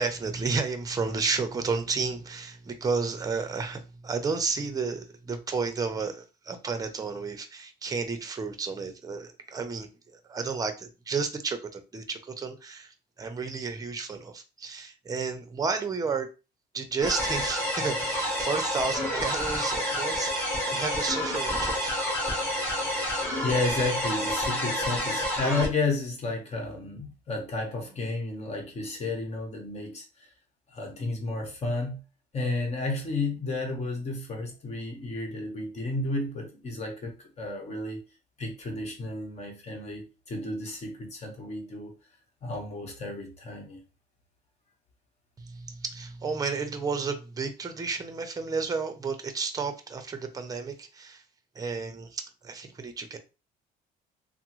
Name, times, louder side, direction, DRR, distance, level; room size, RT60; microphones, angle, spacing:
voice 1, 0.0-16.3 16.7-22.0 45.4-51.2 51.6-53.2, right 4 dB, 20° right, 0.6 m, -32 dB
sound 1, 17.0-25.7, equal, 10° left, 1.4 m, -29 dB
voice 2, 23.4-30.0 30.7-32.0 32.3-38.0 38.4-41.9 42.4-43.8, left 3 dB, 40° left, 1.1 m, -32 dB
3.5 x 2.0 x 3.0 m
cardioid pair, 110°, 17 cm